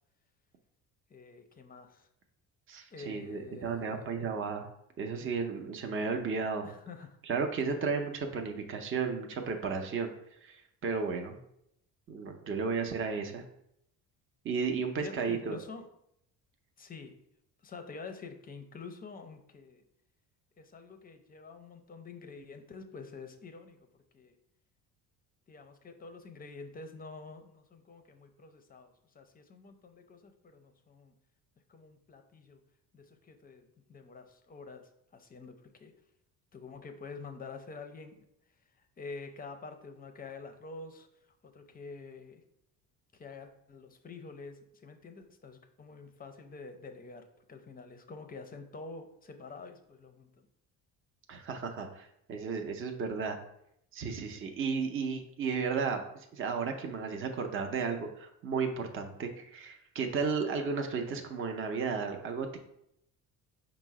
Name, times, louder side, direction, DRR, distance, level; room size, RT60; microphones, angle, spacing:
voice 1, 1.1-2.1 2.9-4.1 6.6-7.2 7.7-7.8 15.0-15.9 16.8-17.2 17.6-19.8 20.6-23.9 24.1-24.4 25.5-31.1 31.7-32.6 32.9-35.9 36.5-38.3 38.8-41.1 41.4-42.4 43.1-50.5, left 4 dB, 25° left, 7 dB, 0.5 m, -47 dB
voice 2, 2.7-4.7 5.0-6.7 7.2-10.1 10.4-11.4 12.1-13.4 14.4-15.6 51.3-53.4 53.9-62.6, right 5 dB, 35° right, 4 dB, 0.6 m, -34 dB
5.2 x 2.0 x 4.6 m, 0.76 s
cardioid pair, 100°, 38 cm